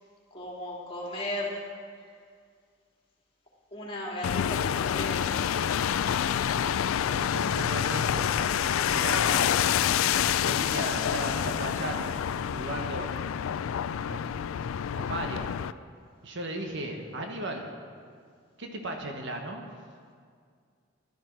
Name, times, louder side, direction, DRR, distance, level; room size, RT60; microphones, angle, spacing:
voice 1, 0.3-1.6 3.7-5.4, left 1 dB, 30° left, -3 dB, 3.0 m, -36 dB
sound 1, 4.2-15.7, left 9 dB, 85° left, 0.3 m, -27 dB
voice 2, 7.0-9.5 10.1-12.2 12.5-13.1 14.1-14.2 14.9-15.5 16.2-17.7 18.6-19.6, right 1 dB, 60° right, 2 dB, 1.4 m, -36 dB
15.5 x 12.5 x 4.7 m, 2.1 s
head